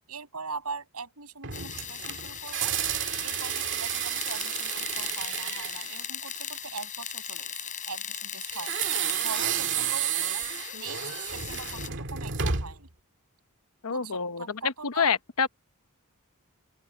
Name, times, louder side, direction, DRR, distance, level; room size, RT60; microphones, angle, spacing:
voice 1, 0.1-2.7 3.2-7.5 7.9-8.8 9.2-10.4 10.7-12.9 13.9-15.1, right 4 dB, 85° right, 6.6 m, -41 dB
sound 1, 1.4-6.8 8.5-12.9, right 8 dB, 60° right, 1.8 m, -31 dB
sound 2, 1.5-11.9, left 8 dB, 35° left, 7.6 m, -38 dB
voice 2, 13.8-15.5, left 6 dB, 75° left, 1.0 m, -27 dB
open air
head